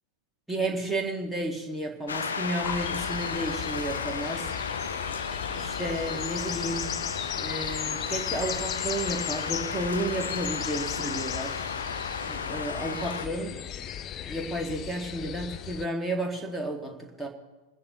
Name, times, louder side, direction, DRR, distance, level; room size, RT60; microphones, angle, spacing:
voice 1, 0.5-4.5 5.5-7.1 7.4-11.6 12.3-13.6 14.3-17.3, right 1 dB, ahead, 0 dB, 1.9 m, -32 dB
sound 1, 2.1-13.3, left 5 dB, 70° left, 0.7 m, -34 dB
sound 2, 2.6-15.9, left 10 dB, 30° left, 0.5 m, -37 dB
28.5 x 9.8 x 3.0 m, 1.1 s
figure-of-eight pair, 90°, 0 cm